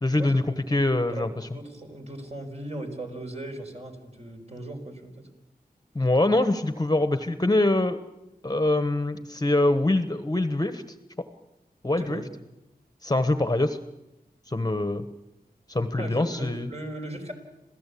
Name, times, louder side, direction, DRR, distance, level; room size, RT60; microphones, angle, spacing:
voice 1, 0.0-1.5 5.9-8.0 8.4-10.8 11.8-12.2 13.0-13.8 14.5-15.1 15.7-16.7, left 2 dB, 25° left, 10 dB, 1.2 m, -24 dB
voice 2, 0.9-5.3 12.0-12.3 16.0-17.3, right 1 dB, 40° right, 3 dB, 5.1 m, -38 dB
27.0 x 16.5 x 8.5 m, 0.96 s
wide cardioid pair, 65°, 16 cm